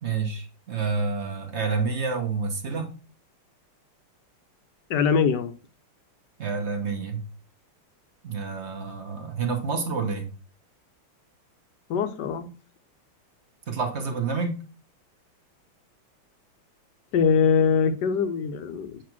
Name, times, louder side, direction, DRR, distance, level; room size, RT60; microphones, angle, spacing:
voice 1, 0.0-3.0 6.4-7.2 8.2-10.3 13.7-14.6, right 4 dB, 40° right, 1.0 m, -28 dB
voice 2, 4.9-5.5 11.9-12.5 17.1-19.0, left 6 dB, 65° left, 1.1 m, -22 dB
7.8 x 3.4 x 6.0 m
omnidirectional pair, 2.4 m